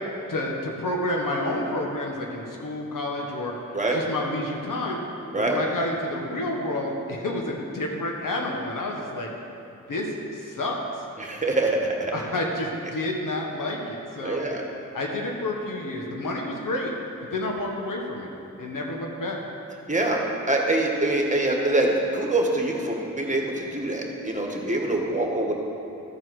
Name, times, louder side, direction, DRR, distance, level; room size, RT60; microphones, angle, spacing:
voice 1, 0.3-5.0 5.3-9.3 9.9-11.0 12.1-14.4 14.9-16.9 17.3-18.3 18.6-19.4, left 1 dB, 75° left, 0 dB, 1.4 m, -29 dB
voice 2, 11.2-12.1 14.2-14.6 19.9-25.5, right 2 dB, 20° right, 0 dB, 1.6 m, -24 dB
13.5 x 4.7 x 6.2 m, 2.8 s
cardioid pair, 50°, 33 cm